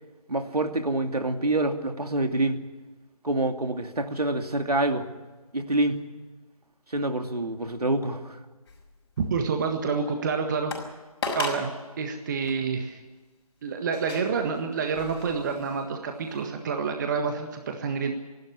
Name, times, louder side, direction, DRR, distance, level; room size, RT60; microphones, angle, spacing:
voice 1, 0.3-2.6 3.2-5.0 5.5-6.0 6.9-8.4, right 2 dB, 85° right, 5 dB, 2.6 m, -26 dB
sound 1, 8.7-9.2 9.8-9.9 10.7-10.9 11.2-11.7 12.4-12.6 13.9-15.9 16.3-16.4, left 4 dB, 40° left, 5.5 m, -36 dB
voice 2, 9.2-10.7 11.3-13.0 13.6-18.1, right 5 dB, 30° right, 5 dB, 1.6 m, -28 dB
27.5 x 12.5 x 9.7 m, 1.2 s
figure-of-eight pair, 155°, 19 cm